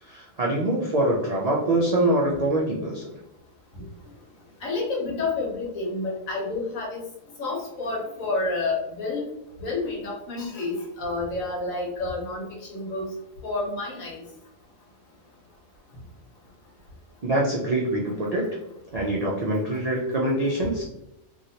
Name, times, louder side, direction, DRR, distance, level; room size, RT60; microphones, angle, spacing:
voice 1, 0.0-3.1 17.2-18.6 18.9-20.8, right 1 dB, 75° right, -3 dB, 0.3 m, -24 dB
voice 2, 4.6-7.0 7.4-9.2 9.6-13.1 13.4-14.2, left 3 dB, 85° left, -3 dB, 1.4 m, -29 dB
2.9 x 2.7 x 2.7 m, 0.84 s
omnidirectional pair, 1.4 m